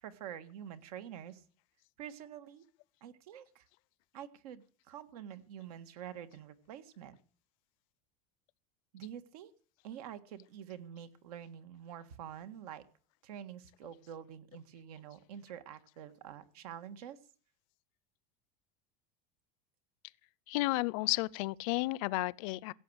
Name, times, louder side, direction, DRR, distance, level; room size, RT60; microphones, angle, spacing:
voice 1, 0.0-1.4 2.0-2.6 3.0-3.6 4.1-7.2 8.9-9.5 9.8-12.8 13.2-17.2, right 9 dB, 85° right, 1.7 m, -47 dB
voice 2, 20.5-22.7, left 21 dB, 65° left, 0.6 m, -32 dB
16.5 x 7.7 x 8.0 m
supercardioid pair, 140°, 19 cm